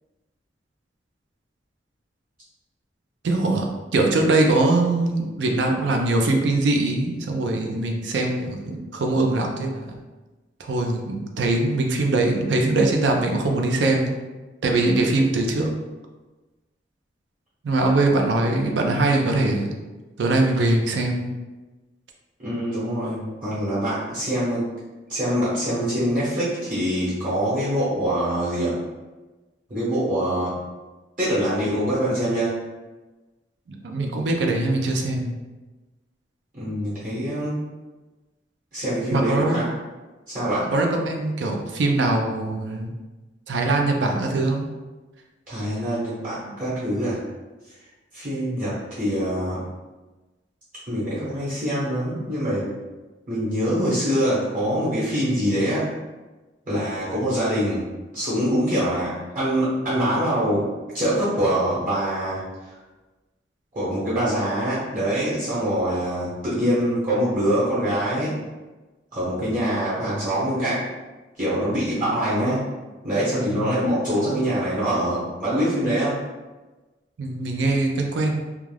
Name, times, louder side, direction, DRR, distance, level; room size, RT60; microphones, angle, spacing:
voice 1, 3.2-3.7 3.9-10.0 10.6-14.1 14.6-15.7 17.6-19.7 20.2-21.3 33.7-35.4 39.1-39.6 40.7-42.9 43.5-44.7 46.4-46.5 73.5-73.8 77.2-78.4, right 2 dB, 75° right, 2 dB, 0.4 m, -22 dB
voice 2, 22.4-24.7 25.1-28.7 29.7-30.6 31.2-32.6 36.5-37.6 38.7-39.7 40.3-40.7 45.5-47.2 48.1-49.6 50.9-52.7 53.3-55.9 56.7-57.8 58.1-60.6 60.9-62.4 62.7-62.8 63.7-68.3 69.1-70.8 71.4-72.6 73.0-76.2, equal, 45° right, -9 dB, 1.0 m, -24 dB
2.3 x 2.3 x 3.2 m, 1.2 s
head